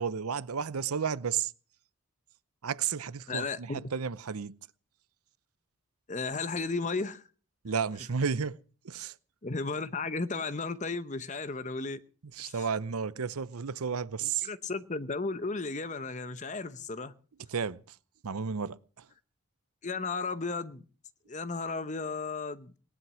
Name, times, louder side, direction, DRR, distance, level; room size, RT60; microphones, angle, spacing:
voice 1, 0.0-1.5 2.6-4.5 7.6-8.6 8.8-9.1 12.4-14.5 17.5-17.8 18.2-18.8, right 6 dB, 85° right, 0.7 m, -32 dB
voice 2, 3.3-3.8 6.1-7.2 9.4-12.0 12.4-12.6 14.2-17.1 19.8-20.8 21.3-22.8, left 3 dB, 35° left, 0.9 m, -34 dB
18.5 x 11.0 x 6.2 m
head